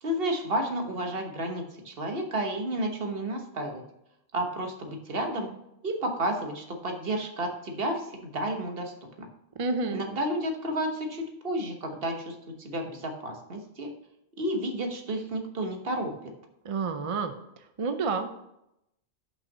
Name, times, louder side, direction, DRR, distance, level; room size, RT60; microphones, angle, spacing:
voice 1, 0.0-3.8 4.3-5.5 5.8-9.3 9.9-13.9 14.4-16.1, right 1 dB, 60° right, 4 dB, 1.4 m, -31 dB
voice 2, 9.6-10.0 16.6-17.3 17.8-18.3, right 4 dB, 40° right, 8 dB, 0.5 m, -29 dB
5.7 x 5.6 x 6.6 m, 0.83 s
omnidirectional pair, 1.1 m